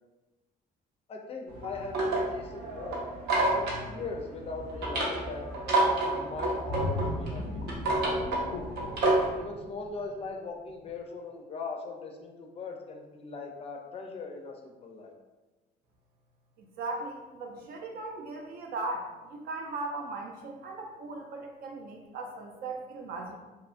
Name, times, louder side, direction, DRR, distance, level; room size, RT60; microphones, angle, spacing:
voice 1, 1.1-3.0 3.5-5.8 6.1-7.8 9.4-15.1, left 4 dB, 35° left, 2 dB, 0.4 m, -40 dB
sound 1, 1.5-9.4, right 2 dB, 85° right, 0.8 m, -29 dB
sound 2, 6.7-10.3 10.7-10.9, left 2 dB, 90° left, 0.5 m, -37 dB
voice 2, 16.6-23.4, right 2 dB, 65° right, 2 dB, 0.5 m, -38 dB
2.8 x 2.3 x 2.4 m, 1.2 s
cardioid pair, 110°, 17 cm